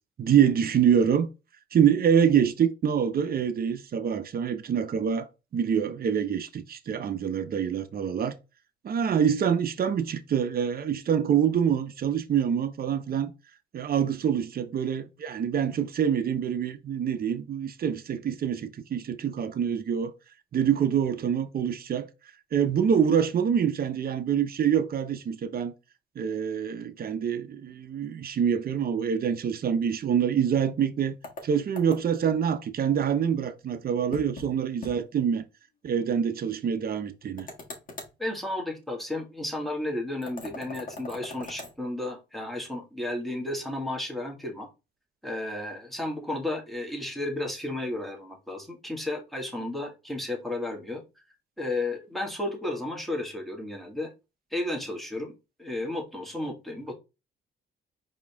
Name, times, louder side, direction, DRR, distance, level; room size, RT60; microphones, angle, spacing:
voice 1, 0.2-1.3 1.7-5.3 5.5-8.3 8.8-13.3 13.7-20.1 20.5-22.1 22.5-25.7 26.2-31.2 31.4-35.4 35.8-37.5, right 8 dB, 50° right, 0.8 m, -25 dB
sound 1, 31.2-32.3 34.1-34.5 34.8-35.0 35.3-35.4 37.4-38.2 40.2-41.7, left 2 dB, 45° left, 1.6 m, -41 dB
voice 2, 38.2-44.7 45.2-51.0 51.6-54.1 54.5-55.3 55.6-56.9, left 1 dB, ahead, 1.6 m, -33 dB
4.8 x 3.0 x 3.4 m
cardioid pair, 90°, 20 cm